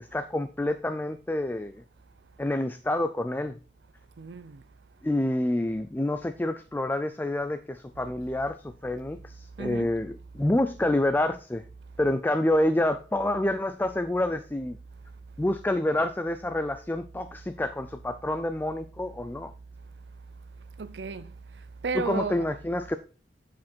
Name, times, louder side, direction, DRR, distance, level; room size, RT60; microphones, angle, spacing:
voice 1, 0.0-1.8 2.4-3.6 5.0-11.6 12.0-14.8 15.4-19.5 21.9-23.0, left 1 dB, 10° left, 0.4 m, -28 dB
voice 2, 4.2-4.6 9.6-9.9 20.8-22.5, right 4 dB, 75° right, 0.5 m, -34 dB
9.4 x 5.1 x 4.4 m
head